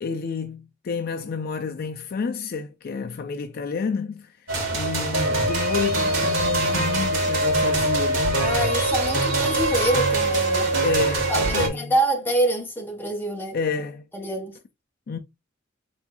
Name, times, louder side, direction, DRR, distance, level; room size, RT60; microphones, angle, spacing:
voice 1, 0.0-4.3 4.7-8.5 10.8-11.9 13.5-14.1 15.1-15.2, left 5 dB, 50° left, 0.4 m, -30 dB
sound 1, 4.5-11.7, right 2 dB, 70° right, 1.5 m, -23 dB
voice 2, 8.4-10.7 11.3-13.6 14.1-14.5, right 1 dB, 10° left, 0.9 m, -26 dB
4.4 x 3.4 x 2.3 m
head